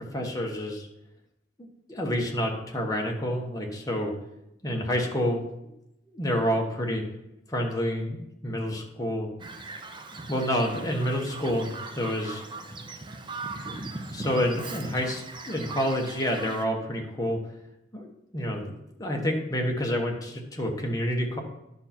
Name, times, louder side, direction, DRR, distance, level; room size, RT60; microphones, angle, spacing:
voice 1, 0.1-0.9 1.9-4.1 4.6-5.4 6.1-7.0 7.5-9.3 10.3-12.4 14.1-17.4 17.9-18.7 19.0-21.4, equal, 20° left, 1 dB, 1.3 m, -28 dB
Bird vocalization bird call bird song, 9.4-16.6, right 3 dB, 25° right, 0.7 m, -39 dB
11.0 x 5.7 x 4.4 m, 0.87 s
head